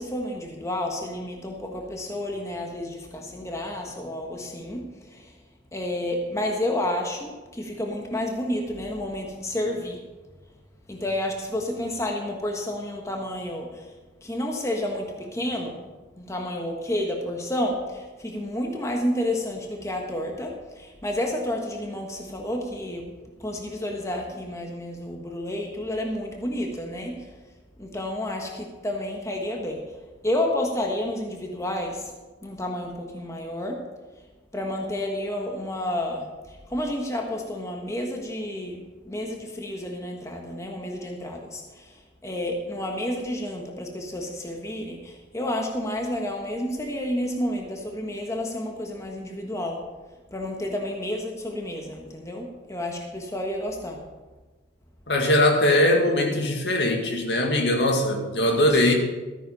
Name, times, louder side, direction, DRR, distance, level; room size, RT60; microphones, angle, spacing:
voice 1, 0.0-5.3 5.7-10.0 10.9-13.8 14.2-15.8 16.2-23.1 23.4-27.3 27.8-29.8 30.2-32.0 32.4-33.8 34.5-42.0 42.2-49.8 50.3-54.0 58.5-58.8, left 1 dB, 15° left, 1 dB, 1.3 m, -30 dB
voice 2, 55.1-58.9, left 1 dB, 65° left, 3 dB, 1.9 m, -21 dB
13.5 x 9.3 x 5.4 m, 1.2 s
head